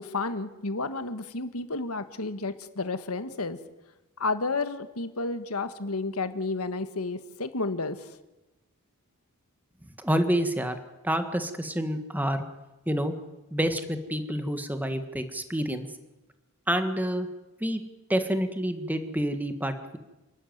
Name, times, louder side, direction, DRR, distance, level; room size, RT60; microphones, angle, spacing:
voice 1, 0.0-3.6 4.2-8.2, left 3 dB, 90° left, 10 dB, 1.6 m, -31 dB
voice 2, 10.0-10.8 11.0-12.4 12.9-13.1 13.5-15.9 16.7-17.3 17.6-17.8 18.1-20.0, equal, 10° right, 8 dB, 1.7 m, -28 dB
28.5 x 12.5 x 9.4 m, 1.1 s
head